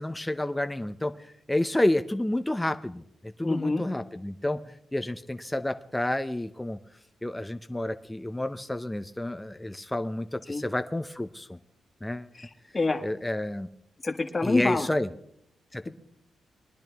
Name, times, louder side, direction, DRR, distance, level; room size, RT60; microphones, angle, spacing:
voice 1, 0.0-6.8 7.2-11.6 12.0-12.3 13.0-13.7 14.4-15.1 15.7-15.9, left 1 dB, 10° left, 9 dB, 0.7 m, -30 dB
voice 2, 3.4-3.8 10.5-10.6 12.3-13.0 14.0-14.9, left 3 dB, 35° left, 6 dB, 1.6 m, -27 dB
22.0 x 10.5 x 3.5 m, 0.72 s
supercardioid pair, 45°, 0 cm